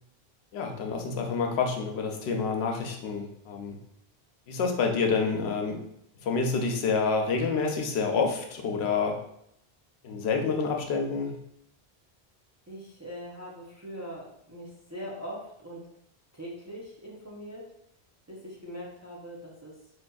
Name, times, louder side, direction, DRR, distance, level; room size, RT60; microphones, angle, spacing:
voice 1, 0.5-3.8 4.5-5.8 6.2-9.2 10.0-11.4, left 4 dB, 85° left, 3 dB, 0.8 m, -28 dB
voice 2, 12.7-15.9 16.3-17.7 18.3-19.8, equal, 25° right, -5 dB, 0.4 m, -41 dB
4.0 x 2.5 x 2.2 m, 0.74 s
omnidirectional pair, 1.1 m